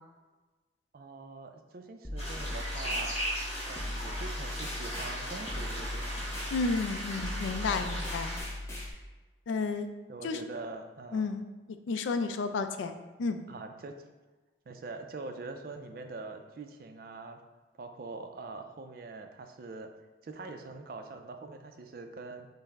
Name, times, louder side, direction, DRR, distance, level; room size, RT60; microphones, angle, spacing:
voice 1, 0.9-3.2 3.7-6.4 7.7-8.1 10.1-11.2 13.5-13.9 14.7-17.4 17.8-19.9 20.2-22.5, right 3 dB, 50° right, 6 dB, 0.3 m, -43 dB
sound 1, 2.0-8.9, left 1 dB, 15° left, 0.6 m, -38 dB
sound 2, 2.2-8.4, equal, 35° left, 1.4 m, -38 dB
voice 2, 6.5-8.4 9.5-9.9 10.2-10.4 11.1-11.4 11.9-13.4, left 4 dB, 85° left, 8 dB, 0.3 m, -32 dB
5.4 x 2.0 x 3.4 m, 1.2 s
head